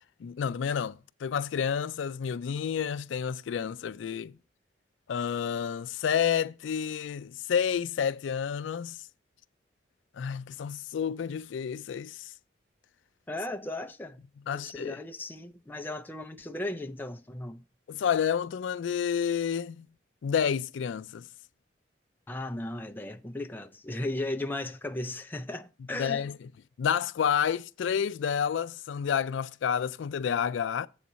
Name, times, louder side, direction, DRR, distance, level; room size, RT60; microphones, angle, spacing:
voice 1, 0.2-4.3 5.1-9.0 10.2-12.3 14.5-15.0 17.9-19.9 20.2-21.3 25.9-26.4 26.8-30.9, left 7 dB, 75° left, 0.3 m, -30 dB
voice 2, 13.3-14.2 14.5-17.6 22.3-26.3, left 1 dB, 10° left, 0.4 m, -36 dB
7.8 x 4.1 x 6.2 m
head